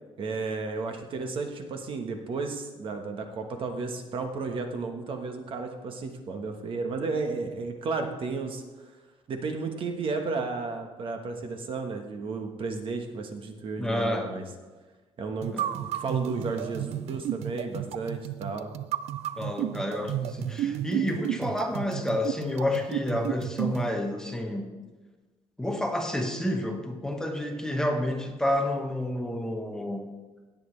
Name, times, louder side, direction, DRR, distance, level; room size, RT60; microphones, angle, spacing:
voice 1, 0.2-8.6 9.3-14.4 15.2-18.7, right 4 dB, 55° right, 5 dB, 1.3 m, -33 dB
voice 2, 13.8-14.3 15.5-15.7 19.4-24.7 25.6-30.0, left 1 dB, 5° left, 3 dB, 1.1 m, -29 dB
sound 1, 15.4-23.9, right 12 dB, 80° right, 0.4 m, -32 dB
17.5 x 7.7 x 3.3 m, 1.3 s
cardioid pair, 145°, 11 cm